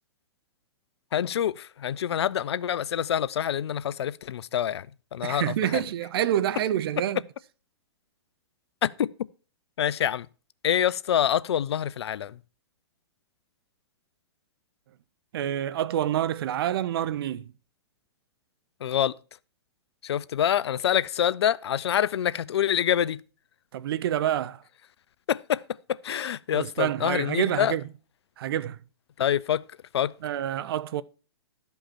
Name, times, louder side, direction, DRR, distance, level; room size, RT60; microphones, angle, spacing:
voice 1, 1.1-4.9 5.1-5.8 8.8-9.1 9.8-10.3 10.6-12.4 18.8-19.1 20.0-23.2 25.3-25.6 26.0-27.7 29.2-29.6 29.9-30.1, left 10 dB, 70° left, 0.5 m, -26 dB
voice 2, 5.2-7.2 15.3-17.5 23.7-24.6 26.5-27.8 28.4-28.8 30.2-31.0, right 11 dB, 60° right, 0.6 m, -27 dB
12.5 x 5.3 x 4.4 m
hypercardioid pair, 125°, 14 cm